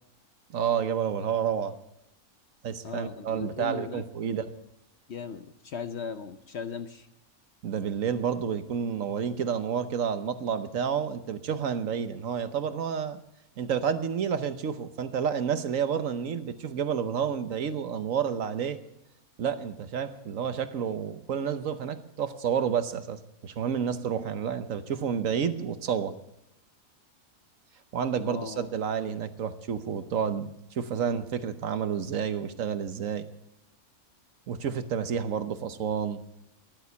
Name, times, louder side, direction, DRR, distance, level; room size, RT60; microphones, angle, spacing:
voice 1, 0.5-1.7 2.6-4.6 7.6-13.2 13.6-18.8 19.4-26.1 27.9-33.3 34.5-36.2, right 7 dB, 65° right, 10 dB, 1.2 m, -30 dB
voice 2, 2.8-4.5 5.1-7.1 28.2-28.7, left 6 dB, 55° left, 9 dB, 0.8 m, -38 dB
14.0 x 11.5 x 6.9 m, 0.82 s
omnidirectional pair, 1.6 m